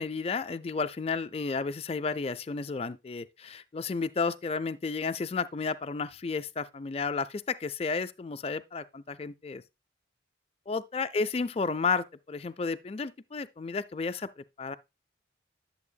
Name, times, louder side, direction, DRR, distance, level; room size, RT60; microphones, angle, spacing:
voice 1, 0.0-9.6 10.7-14.8, left 4 dB, 30° left, 0.4 m, -32 dB
11.0 x 7.0 x 2.2 m
head